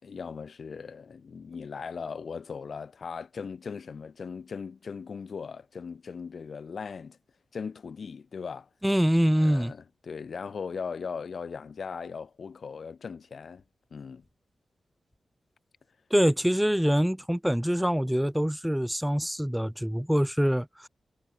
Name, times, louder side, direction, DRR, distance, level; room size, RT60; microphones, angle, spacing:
voice 1, 0.0-7.2 7.5-8.7 9.4-13.6 13.9-14.2, left 5 dB, 65° left, 7.2 m, -38 dB
voice 2, 8.8-9.7 16.1-20.9, equal, 5° right, 6.8 m, -25 dB
cardioid pair, 75°, 0 cm